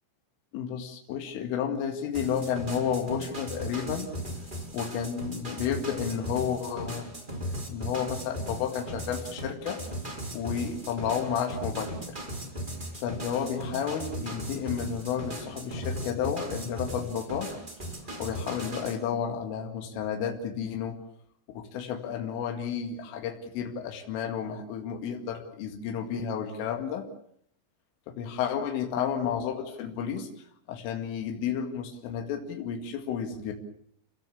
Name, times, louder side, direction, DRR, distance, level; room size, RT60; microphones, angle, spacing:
voice 1, 0.5-4.1 4.7-7.1 7.7-9.8 10.1-12.2 12.9-17.5 18.2-21.0 21.5-27.1 28.2-30.3 30.7-33.5, left 8 dB, 80° left, 3 dB, 4.7 m, -32 dB
sound 1, 2.1-19.0, right 1 dB, 10° right, 4.4 m, -37 dB
28.5 x 17.5 x 8.5 m, 0.68 s
omnidirectional pair, 5.7 m